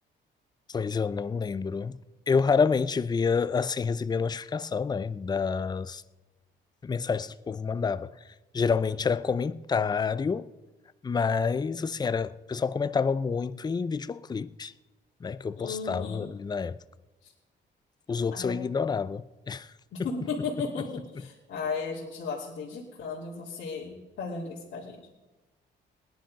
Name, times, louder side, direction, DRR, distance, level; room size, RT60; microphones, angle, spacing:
voice 1, 0.7-2.0 2.3-6.0 6.8-8.2 8.5-10.5 11.0-14.7 15.2-16.8 18.1-19.7 20.0-20.1, left 5 dB, 20° left, 0.5 m, -28 dB
voice 2, 15.6-16.3 17.2-17.3 18.3-18.6 19.9-25.1, left 4 dB, 70° left, 2.4 m, -35 dB
18.0 x 10.5 x 5.2 m
cardioid pair, 90°, 20 cm